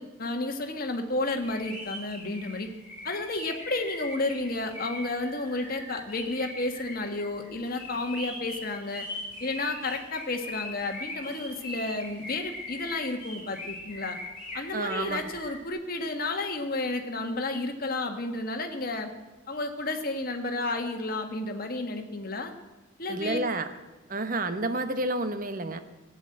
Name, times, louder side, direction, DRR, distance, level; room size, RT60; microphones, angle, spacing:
voice 1, 0.0-2.7 3.0-9.1 9.4-14.2 14.5-19.1 19.5-22.5 23.0-23.4, left 2 dB, 45° left, 5 dB, 1.4 m, -32 dB
sound 1, 1.3-15.6, left 2 dB, 25° left, 4.7 m, -41 dB
voice 2, 14.7-15.2 23.1-23.7 24.1-25.8, right 2 dB, 40° right, 9 dB, 1.0 m, -29 dB
15.5 x 8.2 x 8.9 m, 1.1 s
head